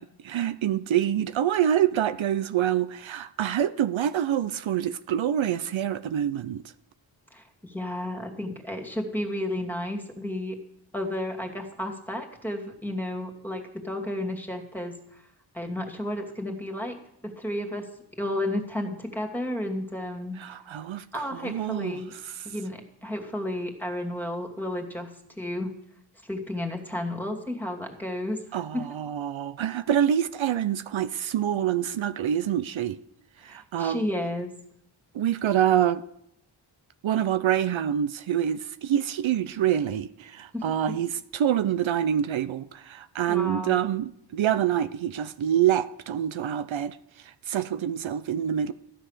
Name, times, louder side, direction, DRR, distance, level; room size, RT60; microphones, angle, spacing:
voice 1, 0.2-6.6 20.4-22.0 28.5-33.0 33.4-34.0 35.1-36.0 37.0-47.0 47.5-48.7, right 10 dB, 75° right, 0.7 m, -26 dB
voice 2, 7.3-10.6 10.9-15.2 15.5-17.0 17.2-17.9 18.2-20.4 21.1-22.1 22.4-25.7 26.2-28.9 33.4-34.5 40.5-41.0 43.3-43.8, left 1 dB, 5° left, 2.6 m, -32 dB
14.5 x 10.0 x 6.7 m
wide cardioid pair, 90°, 47 cm